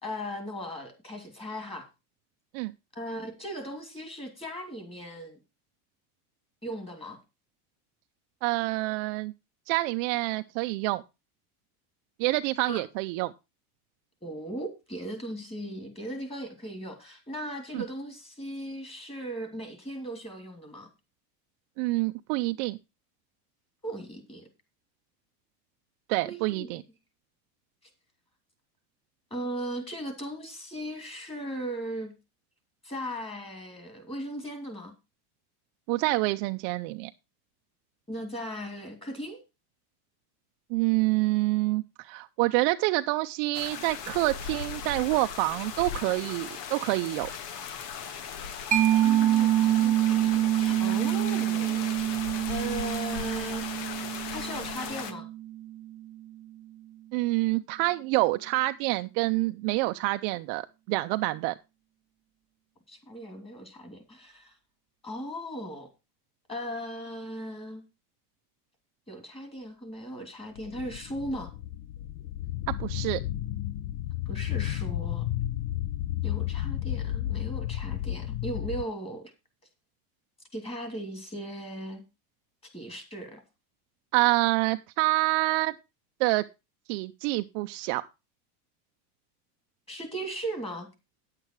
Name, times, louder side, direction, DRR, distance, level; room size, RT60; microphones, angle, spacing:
voice 1, 0.0-1.9 2.9-5.4 6.6-7.2 12.6-12.8 14.2-20.9 23.8-24.5 26.2-26.8 29.3-32.1 32.8-34.9 38.1-39.4 48.8-51.9 52.5-53.7 54.3-55.3 62.9-64.5 65.0-65.9 66.5-67.8 69.1-71.5 74.3-75.2 76.2-79.3 80.5-82.0 82.7-83.4 89.9-90.9, right 1 dB, 10° left, 6 dB, 2.8 m, -37 dB
voice 2, 8.4-9.3 9.7-11.0 12.2-13.3 17.7-17.8 21.8-22.8 26.1-26.8 35.9-37.1 40.7-47.3 57.1-61.5 72.7-73.2 84.1-85.7 86.2-86.4 86.9-88.0, right 21 dB, 50° right, 9 dB, 0.6 m, -27 dB
sound 1, 43.5-55.1, left 7 dB, 85° left, 1.8 m, -38 dB
Mallet percussion, 48.7-56.0, right 13 dB, 15° right, 0.7 m, -26 dB
sound 2, 70.6-78.8, left 13 dB, 50° left, 0.7 m, -32 dB
9.7 x 8.3 x 4.5 m, 0.26 s
supercardioid pair, 155°, 47 cm